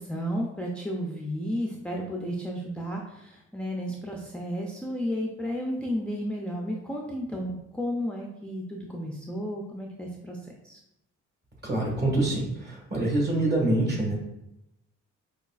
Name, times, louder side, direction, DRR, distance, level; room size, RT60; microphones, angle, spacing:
voice 1, 0.0-10.4 10.6-10.8, equal, 5° left, -1 dB, 0.4 m, -33 dB
voice 2, 11.6-14.1, right 2 dB, 35° right, -2 dB, 1.5 m, -25 dB
4.9 x 2.3 x 2.3 m, 0.87 s
cardioid pair, 90°, 30 cm